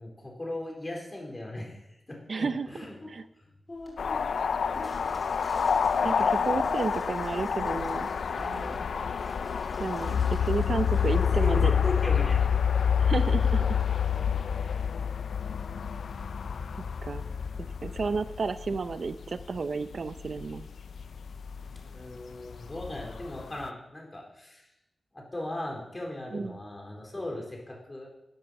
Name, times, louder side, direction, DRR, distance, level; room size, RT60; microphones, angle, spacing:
voice 1, 0.0-1.8 2.1-3.1 3.4-4.2 11.1-12.5 21.8-24.7 25.1-28.1, left 1 dB, 25° left, -1 dB, 4.0 m, -38 dB
voice 2, 2.3-2.7 3.1-3.2 6.0-8.1 9.8-11.7 13.0-13.8 17.0-17.2 17.6-20.7 26.3-26.6, right 4 dB, 55° right, 12 dB, 0.5 m, -32 dB
Water / Toilet flush, 3.7-12.1, equal, ahead, 5.7 m, -52 dB
sound 1, 4.0-19.6 19.9-23.7, left 7 dB, 80° left, 0.4 m, -28 dB
sound 2, 8.4-8.9, right 2 dB, 15° right, 0.8 m, -44 dB
11.5 x 10.0 x 6.9 m, 0.89 s
wide cardioid pair, 115°, 0 cm